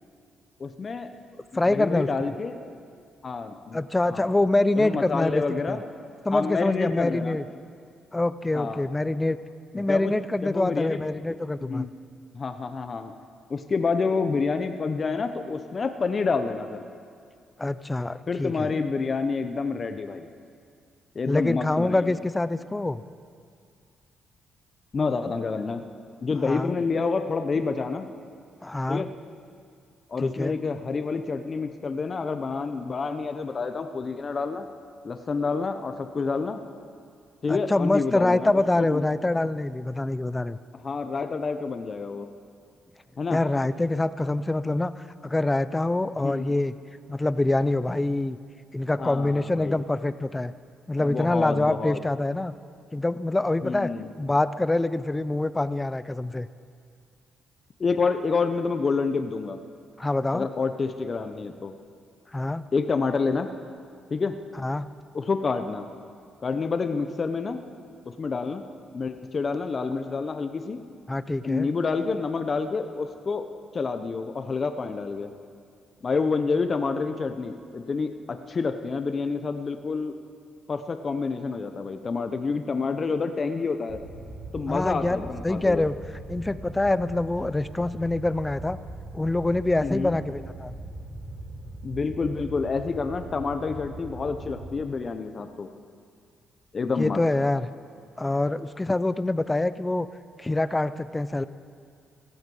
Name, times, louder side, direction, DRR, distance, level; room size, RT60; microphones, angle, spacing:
voice 1, 0.6-1.1 1.5-2.6 3.2-3.8 4.1-4.3 4.8-5.8 6.3-7.4 8.5-8.9 9.7-10.1 10.4-11.0 11.6-11.9 12.3-13.1 13.5-16.8 18.3-20.3 21.1-22.2 24.9-25.8 26.2-28.1 28.9-29.1 30.1-34.7 35.0-36.6 37.4-38.5 38.8-39.0 40.7-42.3 43.2-43.4 46.2-46.5 49.0-49.8 51.0-52.0 53.6-54.1 57.8-59.6 60.3-61.7 62.7-63.5 64.1-64.4 65.1-65.9 66.4-67.6 68.0-68.6 68.9-70.8 71.4-73.5 73.7-75.3 76.0-80.1 80.7-84.0 84.5-85.9 89.8-90.2 91.8-95.7 96.7-97.2, left 4 dB, 40° left, 8 dB, 0.8 m, -28 dB
voice 2, 1.5-2.1 3.7-5.8 6.3-7.4 8.1-9.4 9.7-11.9 17.6-18.7 21.3-23.0 26.4-26.7 28.6-29.0 30.2-30.6 37.5-40.6 43.3-44.9 45.2-46.8 47.1-48.4 48.7-50.5 50.9-52.5 52.9-53.9 54.2-56.5 60.0-60.5 62.3-62.6 64.6-64.9 71.1-71.7 84.7-86.0 86.3-88.8 89.1-90.8 97.0-97.7 98.2-100.1 100.4-101.4, left 2 dB, 15° left, 14 dB, 0.5 m, -25 dB
Fire, 83.9-94.7, right 2 dB, 65° right, 4.6 m, -40 dB
17.0 x 14.5 x 5.5 m, 2.2 s
cardioid pair, 90°, 0 cm